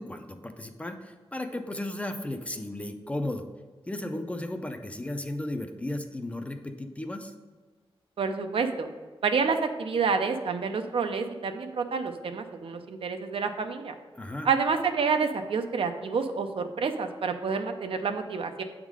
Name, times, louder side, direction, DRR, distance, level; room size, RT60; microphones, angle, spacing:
voice 1, 0.0-3.4 3.9-7.3 14.2-14.5, left 1 dB, 15° left, 6 dB, 0.4 m, -35 dB
voice 2, 8.2-8.9 9.2-13.9 14.4-18.6, right 5 dB, 70° right, 6 dB, 0.6 m, -28 dB
8.1 x 3.6 x 4.8 m, 1.4 s
wide cardioid pair, 170°, 10 cm